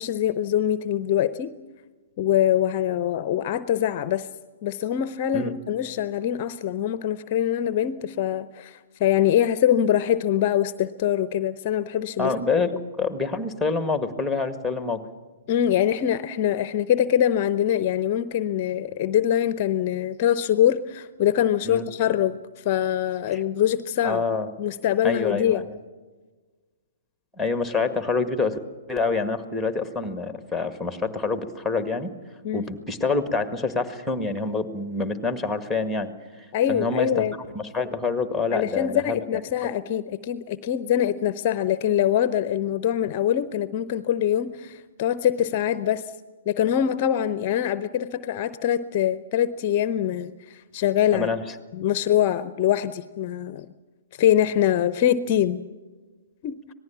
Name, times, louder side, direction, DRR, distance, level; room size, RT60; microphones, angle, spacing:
voice 1, 0.0-1.5 2.2-4.3 4.6-12.3 15.5-24.2 24.6-25.7 32.4-32.7 36.5-37.3 38.5-46.0 46.5-51.3 51.7-53.7 54.2-55.6 56.4-56.6, left 10 dB, 35° left, 14 dB, 0.7 m, -23 dB
voice 2, 12.2-12.7 13.0-15.0 21.6-21.9 23.3-23.4 24.0-24.5 25.0-25.7 27.4-28.6 28.9-32.1 32.5-37.3 37.5-39.7 51.1-51.4, left 4 dB, ahead, 9 dB, 1.8 m, -26 dB
26.0 x 19.0 x 7.2 m, 1.4 s
figure-of-eight pair, 125°, 0 cm